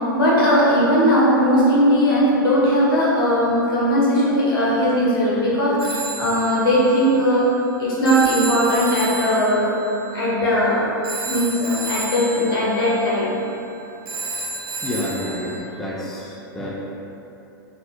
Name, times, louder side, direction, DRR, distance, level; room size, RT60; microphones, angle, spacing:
voice 1, 0.1-7.5 7.8-9.7 10.1-10.8 11.2-13.3, equal, 70° left, -7 dB, 1.1 m, -18 dB
Telephone, 5.8-15.6, right 3 dB, 85° right, 0.6 m, -32 dB
voice 2, 14.8-16.7, left 1 dB, 5° left, -5 dB, 0.3 m, -29 dB
3.3 x 2.3 x 2.8 m, 2.8 s
hypercardioid pair, 120°, 12 cm